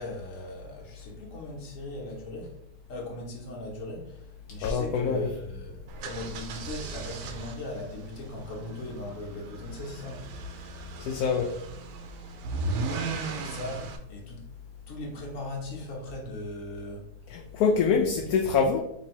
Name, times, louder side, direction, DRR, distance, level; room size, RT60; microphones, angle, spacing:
voice 1, 0.0-2.5 2.9-10.3 12.8-14.4 14.9-17.1 17.7-18.1, left 1 dB, 55° left, -1 dB, 1.3 m, -39 dB
voice 2, 4.6-5.3 11.0-11.5 17.3-18.8, left 5 dB, 70° left, 2 dB, 0.9 m, -25 dB
sound 1, 5.9-14.0, right 3 dB, 80° right, 1.2 m, -37 dB
3.3 x 3.0 x 4.3 m, 0.77 s
omnidirectional pair, 1.8 m